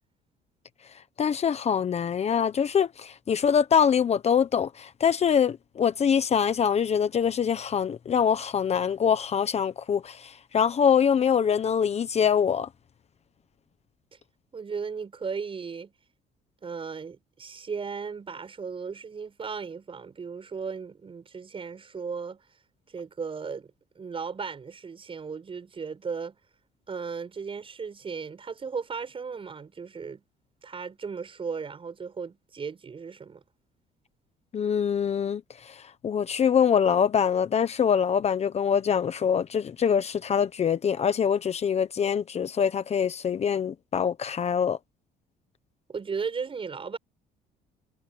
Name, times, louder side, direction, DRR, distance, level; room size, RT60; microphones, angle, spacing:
voice 1, 1.2-12.7 34.5-44.8, left 7 dB, 40° left, 1.1 m, -24 dB
voice 2, 14.5-15.9 16.6-22.4 22.9-26.4 26.9-30.2 30.6-33.4 45.9-47.0, right 5 dB, 30° right, 7.2 m, -36 dB
cardioid pair, 110°, 17 cm